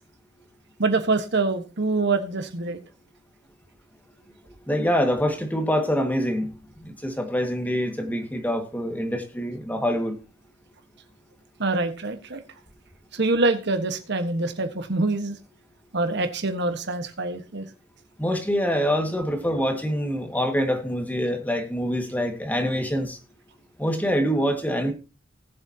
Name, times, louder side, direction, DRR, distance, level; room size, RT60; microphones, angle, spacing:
voice 1, 0.8-2.8 11.6-12.4 13.1-15.4 15.9-17.7, right 3 dB, 60° right, 8 dB, 1.3 m, -25 dB
voice 2, 4.7-6.5 6.8-10.2 18.2-23.2 23.8-24.9, equal, 10° left, 5 dB, 1.8 m, -25 dB
19.5 x 7.6 x 2.8 m, 0.31 s
head